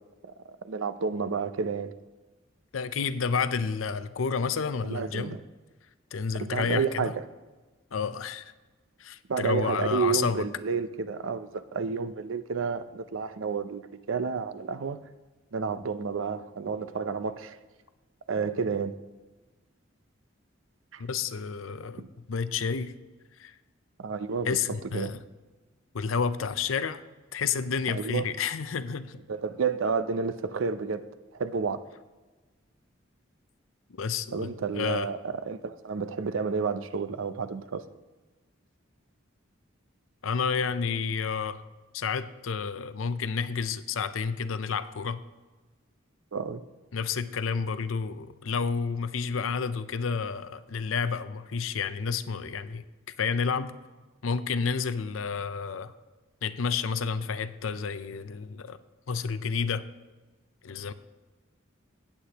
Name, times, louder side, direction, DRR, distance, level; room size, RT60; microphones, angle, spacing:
voice 1, 0.2-1.9 4.8-5.4 6.4-7.2 9.3-15.0 15.5-17.6 18.3-18.9 20.9-21.0 22.0-22.1 24.0-25.1 27.9-28.3 29.3-31.1 31.3-31.8 34.3-37.8 46.3-46.6, right 5 dB, 80° right, 0.5 m, -31 dB
voice 2, 2.7-5.4 6.1-7.1 7.9-8.5 9.0-10.4 21.0-22.0 22.3-22.9 23.4-23.5 24.4-25.2 25.9-27.0 27.3-29.2 33.9-35.1 40.2-41.6 41.9-45.2 46.9-52.8 53.2-53.7 54.2-55.9 56.4-58.8 59.1-59.9 60.6-60.9, left 5 dB, 90° left, 0.6 m, -30 dB
17.0 x 8.3 x 2.9 m
head